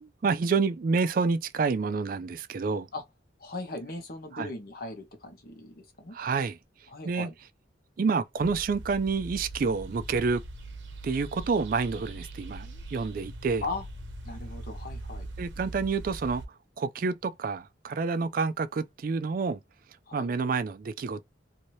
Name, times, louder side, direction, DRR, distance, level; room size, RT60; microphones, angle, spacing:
voice 1, 0.0-2.9 4.3-4.5 6.1-6.6 7.0-7.3 8.0-10.4 11.0-13.6 15.4-16.4 16.8-19.6 20.1-21.2, right 4 dB, 50° right, 0.3 m, -28 dB
voice 2, 3.4-6.2 6.9-7.3 13.6-13.8 14.2-15.3 20.1-20.3, left 2 dB, 55° left, 1.0 m, -38 dB
sound 1, 8.4-16.4, right 2 dB, 85° right, 0.8 m, -41 dB
2.7 x 2.7 x 3.1 m
head